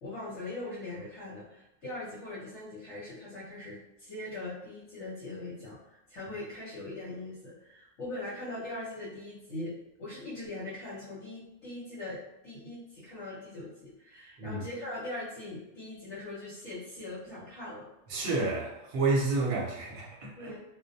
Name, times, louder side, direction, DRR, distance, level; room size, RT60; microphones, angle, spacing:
voice 1, 0.0-9.7 10.0-17.9 20.3-20.6, left 2 dB, 70° left, -10 dB, 1.1 m, -41 dB
voice 2, 18.1-20.5, right 3 dB, 60° right, -2 dB, 0.8 m, -30 dB
2.3 x 2.2 x 2.6 m, 0.89 s
omnidirectional pair, 1.3 m